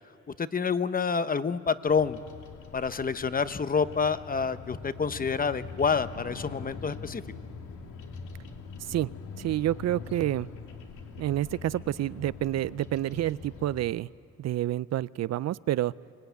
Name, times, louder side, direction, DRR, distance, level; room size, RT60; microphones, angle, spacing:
voice 1, 0.4-2.2 2.7-7.2, left 5 dB, 30° left, 13 dB, 0.9 m, -28 dB
Bird vocalization bird call bird song, 1.9-13.9, left 5 dB, 80° left, 2.8 m, -43 dB
voice 2, 8.8-9.1 9.4-10.5 11.2-14.1 14.4-15.9, right 14 dB, 60° right, 19 dB, 0.5 m, -28 dB
24.0 x 19.5 x 9.3 m, 2.5 s
cardioid pair, 90°, 30 cm